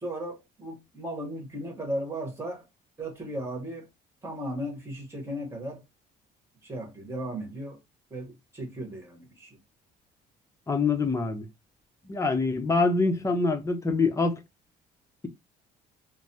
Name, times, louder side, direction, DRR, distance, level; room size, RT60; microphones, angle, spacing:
voice 1, 0.0-2.6 3.0-3.9 4.2-5.8 6.6-7.8 8.1-9.6, right 1 dB, 15° right, 1.3 m, -36 dB
voice 2, 10.7-11.5 12.1-14.4, left 3 dB, 15° left, 0.6 m, -25 dB
3.2 x 2.0 x 2.8 m
cardioid pair, 110°, 17 cm